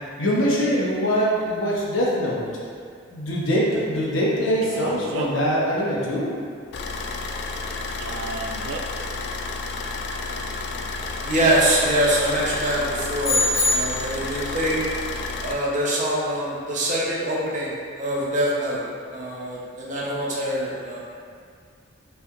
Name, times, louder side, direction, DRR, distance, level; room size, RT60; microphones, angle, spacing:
voice 1, 0.2-2.5 3.1-6.3, equal, 80° left, -5 dB, 0.9 m, -23 dB
Male speech man speaking, 4.6-5.5 8.0-8.8, right 3 dB, 70° right, 0.4 m, -34 dB
Car / Idling, 6.7-15.5, left 3 dB, 60° left, 0.3 m, -31 dB
voice 2, 11.2-14.8 15.4-18.8 19.1-21.0, right 1 dB, 40° right, -6 dB, 0.7 m, -24 dB
sound 1, 13.2-14.3, left 2 dB, 30° left, 1.4 m, -23 dB
5.6 x 3.2 x 2.5 m, 2.2 s
head